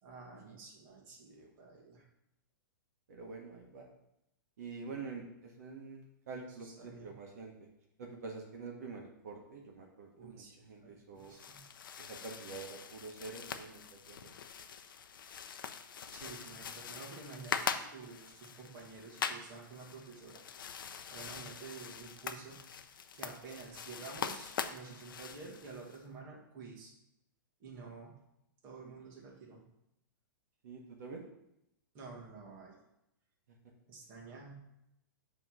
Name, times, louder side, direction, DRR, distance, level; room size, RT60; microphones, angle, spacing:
voice 1, 0.0-2.0 6.6-7.1 10.2-10.5 10.8-11.6 16.1-20.4 21.1-22.6 23.1-26.9 27.6-28.2 28.6-29.6 31.9-32.8 33.9-34.6, right 4 dB, 20° right, -3 dB, 1.2 m, -50 dB
voice 2, 3.1-3.8 4.6-7.5 8.0-11.3 12.0-13.8 14.1-14.3 28.8-28.9 29.3-29.5 30.6-31.3, right 4 dB, 50° right, 0 dB, 1.0 m, -47 dB
sound 1, 11.2-26.0, left 7 dB, 75° left, 0.6 m, -43 dB
7.7 x 3.0 x 6.0 m, 0.83 s
hypercardioid pair, 180°, 11 cm